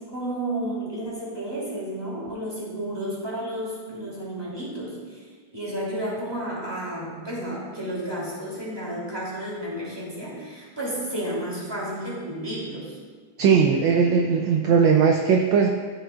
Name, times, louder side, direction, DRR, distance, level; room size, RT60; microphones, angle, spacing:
voice 1, 0.0-5.2 5.5-12.9, right 1 dB, 10° right, -7 dB, 2.9 m, -32 dB
voice 2, 13.4-15.7, right 6 dB, 70° right, 2 dB, 1.3 m, -19 dB
13.5 x 7.7 x 2.4 m, 1.5 s
omnidirectional pair, 2.3 m